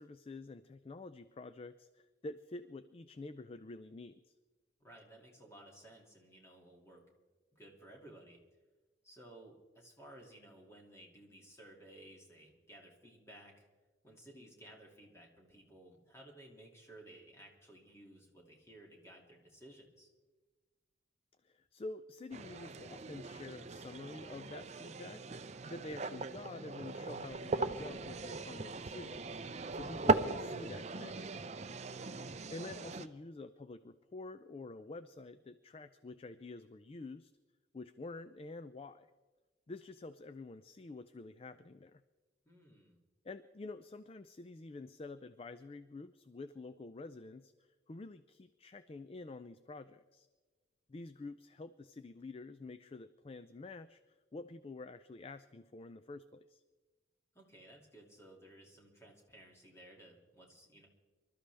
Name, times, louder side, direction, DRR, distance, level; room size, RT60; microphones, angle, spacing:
voice 1, 0.0-4.4 21.4-29.4 29.7-31.4 32.3-37.3 37.7-39.1 39.7-42.0 43.2-50.3 50.9-56.6, left 3 dB, 30° left, 13 dB, 0.4 m, -48 dB
voice 2, 4.8-7.0 7.5-8.4 9.0-13.7 14.0-20.1 31.8-32.2 42.4-43.0 57.3-60.9, right 1 dB, 15° left, 0 dB, 2.4 m, -57 dB
sound 1, 22.3-33.1, right 3 dB, 35° right, 0.5 m, -38 dB
25.0 x 13.0 x 3.4 m, 1.3 s
head